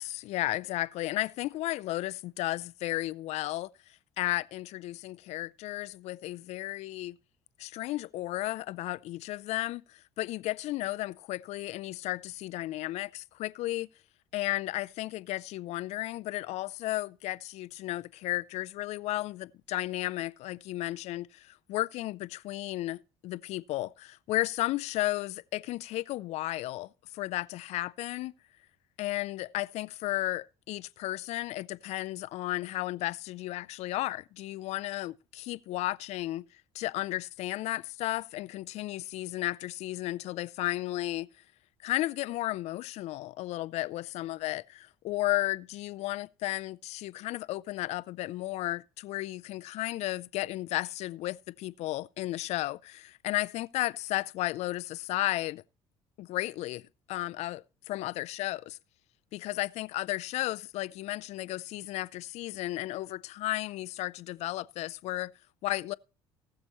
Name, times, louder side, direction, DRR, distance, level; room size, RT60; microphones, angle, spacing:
voice 1, 0.0-3.7 4.2-7.2 7.6-13.9 14.3-28.3 29.0-36.4 36.7-41.3 41.8-55.6 56.2-56.8 57.1-58.8 59.3-65.3 65.6-65.9, left 17 dB, 65° left, 0.5 m, -34 dB
19.0 x 6.8 x 3.0 m
supercardioid pair, 70°, 12 cm